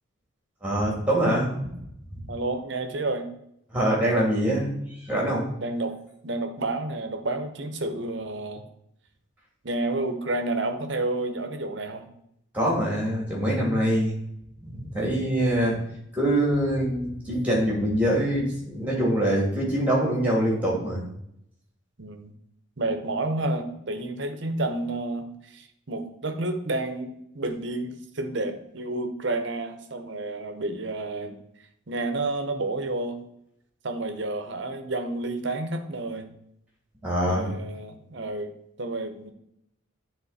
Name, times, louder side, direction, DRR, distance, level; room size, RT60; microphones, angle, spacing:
voice 1, 0.6-1.7 3.7-4.7 5.0-5.5 12.5-14.1 14.6-15.8 16.1-21.0 37.0-37.5, right 1 dB, 5° right, -3 dB, 2.5 m, -24 dB
voice 2, 2.3-3.3 5.6-6.0 6.2-8.6 9.6-12.1 15.6-15.8 22.0-22.3 22.8-31.4 31.9-33.2 33.8-36.3 37.3-38.5 38.8-39.3, right 2 dB, 60° right, 7 dB, 0.9 m, -30 dB
9.6 x 3.8 x 4.1 m, 0.77 s
head